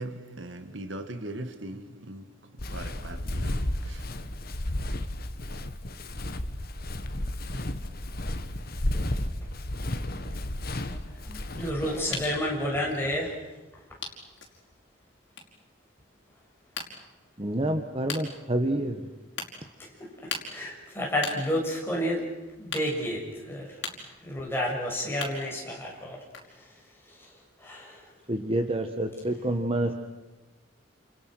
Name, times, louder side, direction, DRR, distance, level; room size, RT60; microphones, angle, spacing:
voice 1, 0.0-2.2 2.7-4.0, right 1 dB, 70° right, 1.9 m, -39 dB
Walk footsteps, 2.6-12.2, left 1 dB, 50° left, 1.6 m, -33 dB
sound 1, 10.9-13.1 13.7-13.8 14.0-14.7 15.2-15.6 16.1-16.9 17.6-17.7 18.1-18.2 19.0-19.1 19.4-19.5 20.3-25.8 26.1-26.5, left 5 dB, 70° left, 5.2 m, -39 dB
voice 2, 11.2-13.4 20.5-22.3 22.6-23.7 24.2-26.2 27.6-28.0, equal, 10° left, 7.2 m, -30 dB
voice 3, 17.4-19.0 28.3-29.9, right 1 dB, 30° right, 1.4 m, -28 dB
30.0 x 28.5 x 6.4 m
head